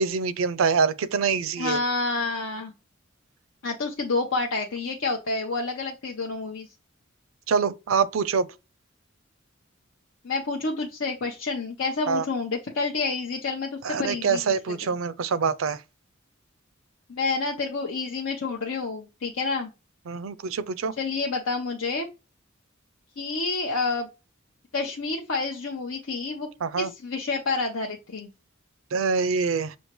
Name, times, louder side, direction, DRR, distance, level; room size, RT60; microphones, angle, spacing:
voice 1, 0.0-1.8 7.5-8.5 12.1-12.2 13.8-15.8 20.1-20.9 26.6-26.9 28.9-29.8, right 5 dB, 85° right, 0.5 m, -25 dB
voice 2, 1.6-2.7 3.6-6.7 10.2-14.9 17.1-19.7 21.0-22.1 23.2-24.1 24.7-26.5 26.8-28.3, left 3 dB, 75° left, 0.8 m, -29 dB
6.2 x 2.8 x 3.0 m
head